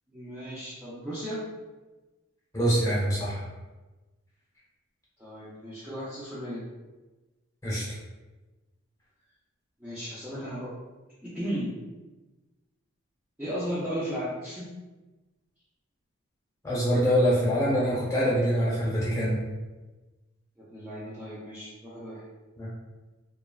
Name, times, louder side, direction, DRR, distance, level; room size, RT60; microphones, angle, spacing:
voice 1, 0.1-1.4 5.2-6.6 9.8-10.7 11.2-11.7 13.4-14.7 20.6-22.2, equal, 5° right, -11 dB, 0.4 m, -35 dB
voice 2, 2.5-3.4 7.6-7.8 16.6-19.4 22.6-22.7, equal, 15° left, -7 dB, 0.8 m, -24 dB
3.0 x 2.2 x 2.3 m, 1.2 s
head